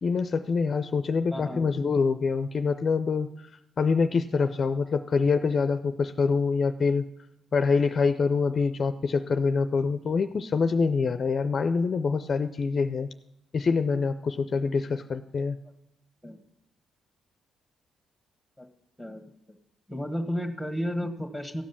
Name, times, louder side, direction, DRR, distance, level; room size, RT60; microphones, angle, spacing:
voice 1, 0.0-3.5 3.8-7.0 7.5-13.1 13.5-15.6, left 4 dB, 45° left, 10 dB, 0.5 m, -25 dB
voice 2, 1.3-1.6 16.2-16.4 18.6-18.7 19.0-19.6 19.9-21.6, equal, ahead, 6 dB, 1.4 m, -33 dB
15.0 x 5.2 x 7.0 m, 0.82 s
cardioid pair, 90°, 0 cm